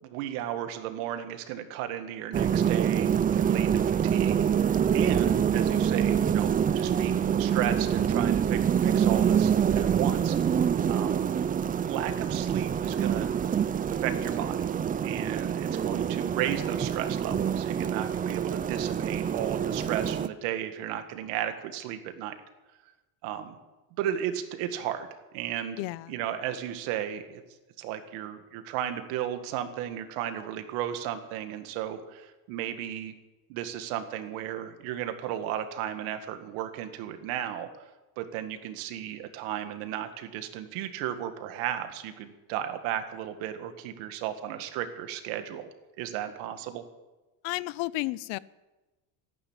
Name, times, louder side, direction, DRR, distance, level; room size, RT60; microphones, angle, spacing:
voice 1, 0.0-10.4 10.9-11.3 11.9-14.6 15.0-22.4 23.2-23.6 24.0-25.1 25.3-27.4 27.8-33.1 33.5-37.7 38.2-45.7 46.0-46.8, right 11 dB, 85° right, 8 dB, 2.1 m, -34 dB
sound 1, 2.3-20.3, right 8 dB, 20° right, 0.4 m, -26 dB
voice 2, 25.8-26.2 47.4-48.4, left 19 dB, 75° left, 19 dB, 0.8 m, -32 dB
14.5 x 11.5 x 8.9 m, 1.1 s
cardioid pair, 135°, 43 cm